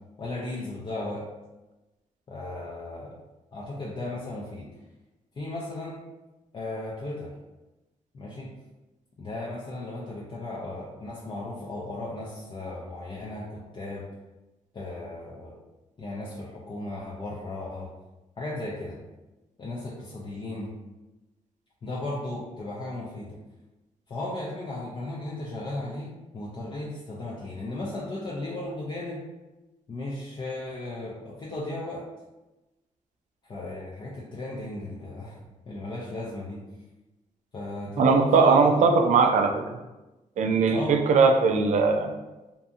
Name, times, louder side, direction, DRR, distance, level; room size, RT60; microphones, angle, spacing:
voice 1, 0.2-1.2 2.3-3.1 3.5-4.7 5.4-6.0 6.5-7.3 8.1-8.5 9.2-14.1 14.7-15.5 16.0-17.9 18.4-19.0 19.6-20.7 21.8-23.4 24.1-29.2 29.9-32.0 33.5-35.4 35.7-36.6 37.5-39.0 40.7-41.0, left 2 dB, 35° left, -5 dB, 0.5 m, -35 dB
voice 2, 38.0-39.7 40.4-42.1, right 4 dB, 65° right, 4 dB, 0.4 m, -20 dB
2.8 x 2.6 x 2.3 m, 1.1 s
cardioid pair, 105°, 13 cm